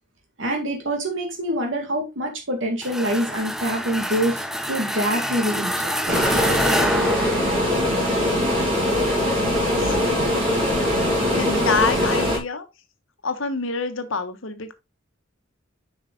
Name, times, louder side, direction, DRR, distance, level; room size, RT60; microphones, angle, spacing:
voice 1, 0.4-4.4 4.7-6.2, right 1 dB, 75° right, 2.2 m, -25 dB
sound 1, 2.8-8.0, equal, ahead, 0.7 m, -27 dB
sound 2, 6.1-12.4, left 1 dB, 30° right, 3.9 m, -21 dB
voice 2, 9.5-10.0 11.4-12.6 13.2-14.7, left 4 dB, 85° left, 1.2 m, -27 dB
7.1 x 5.6 x 3.9 m
head